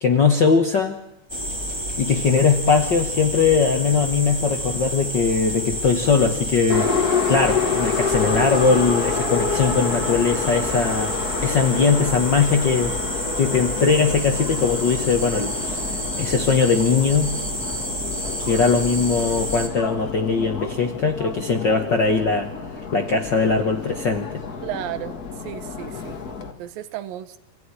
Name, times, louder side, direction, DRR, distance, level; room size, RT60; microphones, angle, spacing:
voice 1, 0.0-1.0 2.0-6.9 7.3-11.1 11.4-13.0 13.4-15.9 16.2-17.3 18.4-22.5 22.9-24.3, left 5 dB, 60° left, 5 dB, 1.2 m, -20 dB
sound 1, 1.3-19.7, equal, 10° right, 2.7 m, -29 dB
Subway metro underground, 6.7-26.5, left 5 dB, 35° left, 1.6 m, -29 dB
voice 2, 24.6-25.2 25.4-26.2 26.6-27.4, right 12 dB, 85° right, 12 dB, 2.9 m, -33 dB
26.5 x 16.0 x 10.0 m, 0.83 s
omnidirectional pair, 4.0 m